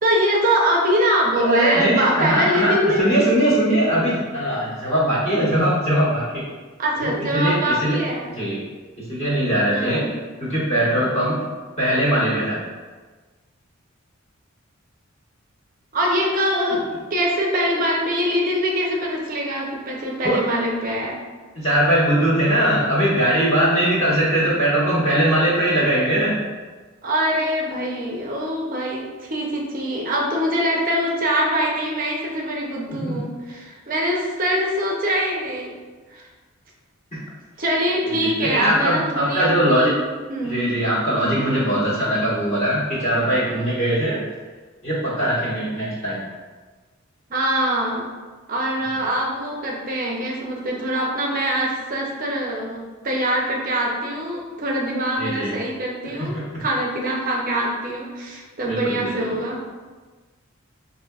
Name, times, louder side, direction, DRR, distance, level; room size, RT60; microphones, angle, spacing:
voice 1, 0.0-3.1 6.8-8.3 9.7-10.1 15.9-16.8 17.1-21.2 27.0-35.8 36.1-36.2 37.6-40.6 41.4-41.7 47.3-48.1 48.5-59.6, equal, 40° right, -1 dB, 0.6 m, -23 dB
voice 2, 1.3-6.4 7.0-8.0 8.4-8.6 9.0-10.1 10.4-11.4 11.8-12.6 20.2-20.4 21.5-26.4 32.9-33.2 37.1-37.2 38.0-39.9 40.4-44.2 44.8-46.3 55.2-55.6 56.2-56.6 58.7-59.3, right 1 dB, 30° left, -11 dB, 1.4 m, -21 dB
5.4 x 2.6 x 2.3 m, 1.4 s
head